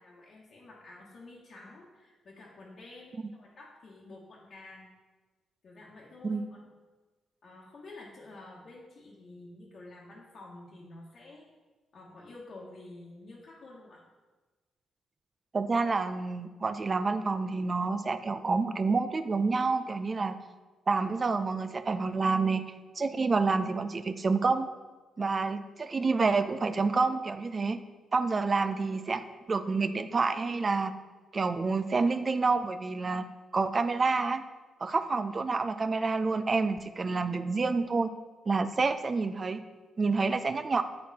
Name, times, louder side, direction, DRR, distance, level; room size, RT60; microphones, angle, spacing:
voice 1, 0.0-4.9 5.6-6.6 7.4-11.5 11.9-14.0, left 2 dB, 55° left, -4 dB, 1.2 m, -49 dB
voice 2, 15.5-20.4 20.9-22.6 23.0-24.7 25.2-27.8 28.1-29.2 29.5-30.9 31.3-33.2 33.5-34.4 34.8-38.1 38.5-39.6 40.0-40.8, right 4 dB, 40° right, 10 dB, 0.5 m, -28 dB
8.7 x 4.2 x 4.1 m, 1.3 s
supercardioid pair, 50°, 0 cm